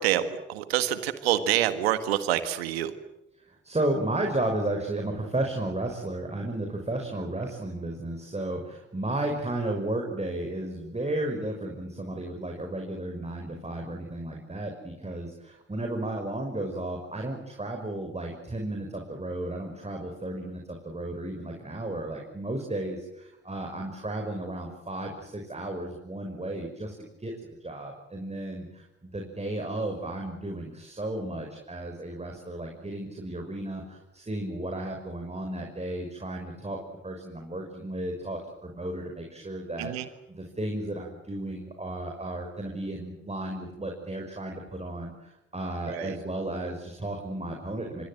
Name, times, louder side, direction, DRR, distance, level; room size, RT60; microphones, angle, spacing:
voice 1, 0.0-2.9 39.8-40.1 45.9-46.2, right 12 dB, 85° right, 12 dB, 1.7 m, -27 dB
voice 2, 3.5-27.3 27.6-48.0, right 1 dB, 20° right, 2 dB, 6.0 m, -33 dB
27.0 x 24.5 x 7.9 m, 0.91 s
hypercardioid pair, 45°, 30 cm